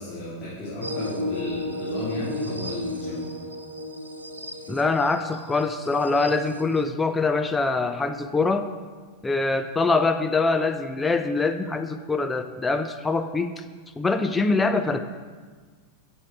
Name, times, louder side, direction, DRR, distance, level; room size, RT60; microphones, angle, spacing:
voice 1, 0.0-3.3, left 2 dB, 35° left, -10 dB, 3.5 m, -33 dB
sound 1, 0.8-6.8, left 1 dB, 80° right, 0.8 m, -34 dB
voice 2, 4.7-8.7 9.2-13.6 14.0-15.0, left 3 dB, 10° left, 8 dB, 0.5 m, -24 dB
11.5 x 7.0 x 4.8 m, 1.5 s
figure-of-eight pair, 90°, 0 cm